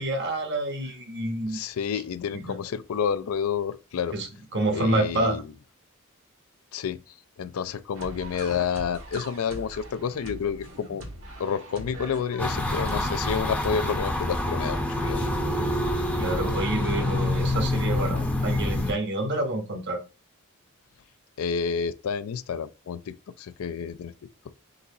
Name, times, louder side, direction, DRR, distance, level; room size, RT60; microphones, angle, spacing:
voice 1, 0.0-1.6 2.3-2.6 4.1-5.4 16.1-20.0, right 2 dB, 50° right, 1.0 m, -28 dB
voice 2, 1.5-4.2 4.7-5.5 6.7-11.1 11.4-15.4 21.4-24.1, left 7 dB, 80° left, 0.4 m, -30 dB
sound 1, 7.9-13.2, right 1 dB, 70° right, 1.4 m, -42 dB
sound 2, 12.4-18.9, left 1 dB, 5° left, 0.7 m, -26 dB
4.0 x 4.0 x 2.7 m
head